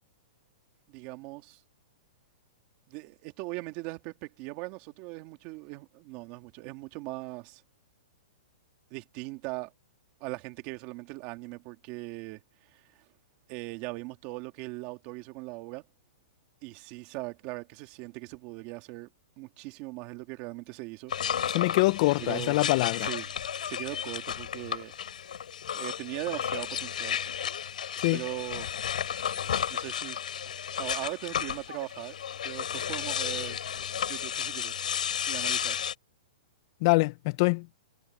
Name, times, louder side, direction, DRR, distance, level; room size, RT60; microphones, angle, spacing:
voice 1, 0.9-1.6 2.9-7.6 8.9-9.7 10.2-13.0 13.5-15.8 16.6-19.1 19.4-21.1 21.4-21.6 22.2-22.6 23.0-23.3 23.6-24.9 25.7-27.2 28.1-28.7 29.7-30.2 30.8-32.2 32.4-33.6 34.1-34.8 35.3-35.8, right 22 dB, 30° right, 2.5 m, -39 dB
sound 1, 21.1-35.9, left 8 dB, 90° left, 6.6 m, -33 dB
voice 2, 21.5-23.1 28.0-28.2 36.8-37.7, left 23 dB, 35° left, 0.5 m, -24 dB
hypercardioid pair, 165°, 4 cm